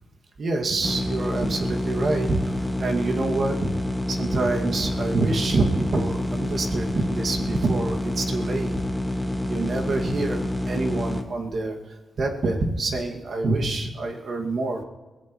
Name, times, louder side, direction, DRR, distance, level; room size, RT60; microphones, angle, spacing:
voice 1, 0.4-3.7 4.1-8.8 9.5-14.8, right 3 dB, 60° right, 2 dB, 2.1 m, -26 dB
sound 1, 0.8-11.2, left 1 dB, 5° left, 1.9 m, -28 dB
22.5 x 15.5 x 3.1 m, 1.3 s
cardioid pair, 70°, 0 cm